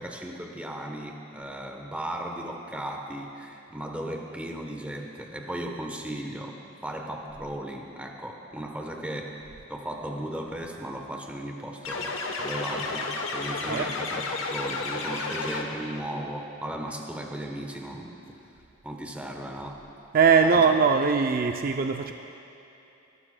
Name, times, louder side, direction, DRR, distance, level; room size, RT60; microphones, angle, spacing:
voice 1, 0.0-9.4 9.7-18.4 18.8-19.8 20.5-20.7, right 1 dB, 5° right, 2 dB, 1.0 m, -36 dB
sound 1, 11.8-16.0, left 3 dB, 70° left, 1.0 m, -32 dB
voice 2, 20.1-22.1, right 5 dB, 45° right, 5 dB, 0.4 m, -21 dB
26.5 x 12.0 x 2.2 m, 2.8 s
head